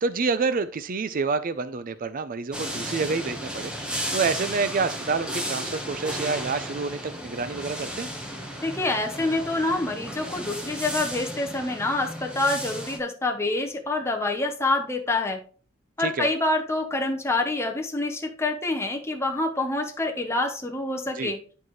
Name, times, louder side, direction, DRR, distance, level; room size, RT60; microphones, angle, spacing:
voice 1, 0.0-3.7 4.1-8.1 16.0-16.3 21.2-21.3, right 4 dB, 45° right, 0.5 m, -28 dB
sound 1, 2.5-13.0, equal, 5° right, 1.1 m, -34 dB
voice 2, 8.6-15.4 16.0-21.4, left 2 dB, 15° left, 0.8 m, -26 dB
11.0 x 4.6 x 3.1 m
head